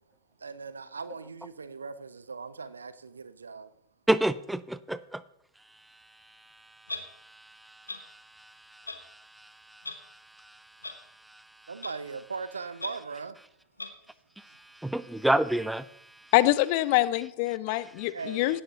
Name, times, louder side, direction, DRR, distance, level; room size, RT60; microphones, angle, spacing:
voice 1, 0.4-3.7 11.7-13.4 18.0-18.6, right 4 dB, 75° right, 0.6 m, -39 dB
voice 2, 4.1-5.2 14.8-15.9, right 1 dB, 5° right, 0.4 m, -26 dB
Clock, 6.9-7.0 7.9-8.0 8.9-9.0 9.8-9.9 10.8-10.9 11.8-11.9 12.8-12.9 13.8-13.9, left 3 dB, 80° left, 1.1 m, -36 dB
voice 3, 16.3-18.6, left 17 dB, 45° left, 0.6 m, -25 dB
17.0 x 9.9 x 2.9 m
figure-of-eight pair, 90°, 0 cm